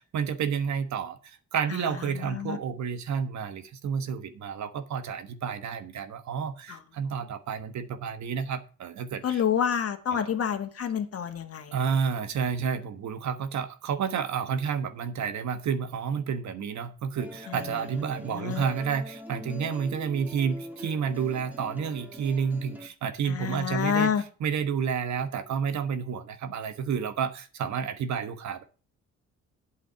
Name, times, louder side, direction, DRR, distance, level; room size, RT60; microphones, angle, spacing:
voice 1, 0.0-9.4 10.1-10.3 11.7-24.1 24.4-28.6, right 6 dB, 65° right, 10 dB, 1.3 m, -30 dB
voice 2, 1.7-2.6 6.7-6.8 9.2-12.0 17.5-17.8 18.2-18.7 23.3-24.2, left 8 dB, 50° left, 7 dB, 1.7 m, -29 dB
sound 1, 17.2-22.9, equal, 5° right, 2.1 m, -43 dB
8.6 x 7.7 x 5.8 m, 0.36 s
cardioid pair, 90°, 30 cm